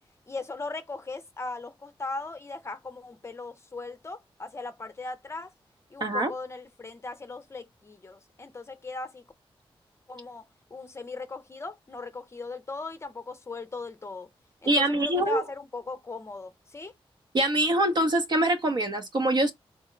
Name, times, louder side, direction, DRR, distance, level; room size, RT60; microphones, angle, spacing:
voice 1, 0.3-5.5 5.9-9.2 10.1-10.4 10.7-14.3 14.6-16.9, left 3 dB, 30° left, 0.5 m, -38 dB
voice 2, 6.0-6.3 14.7-15.4 17.3-19.5, right 1 dB, 50° right, 0.7 m, -24 dB
3.9 x 2.0 x 3.7 m
wide cardioid pair, 135°, 10 cm